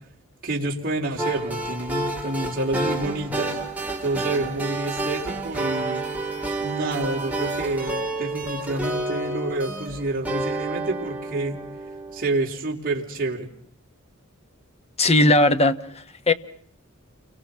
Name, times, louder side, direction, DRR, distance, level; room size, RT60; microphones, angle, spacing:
voice 1, 0.4-3.6 4.0-6.0 6.6-11.6 12.1-13.5, right 2 dB, 45° right, 4.4 m, -28 dB
sound 1, 1.2-12.3, right 2 dB, 5° right, 4.1 m, -29 dB
voice 2, 15.0-16.3, left 2 dB, 30° left, 1.3 m, -19 dB
29.5 x 24.0 x 5.8 m
head